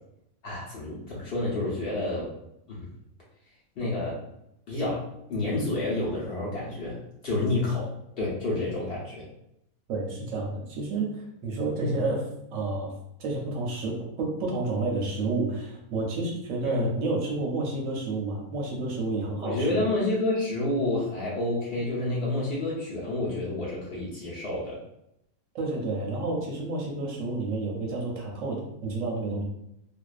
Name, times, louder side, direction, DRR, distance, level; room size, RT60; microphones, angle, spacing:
voice 1, 0.4-2.3 2.7-2.9 3.8-4.2 4.7-5.0 5.3-7.9 8.2-9.3 11.8-12.0 16.6-16.9 19.4-24.8, left 2 dB, 55° left, -7 dB, 0.8 m, -29 dB
voice 2, 9.9-19.8 25.5-29.4, right 3 dB, 70° right, -1 dB, 0.9 m, -30 dB
2.4 x 2.2 x 2.3 m, 0.82 s
omnidirectional pair, 1.5 m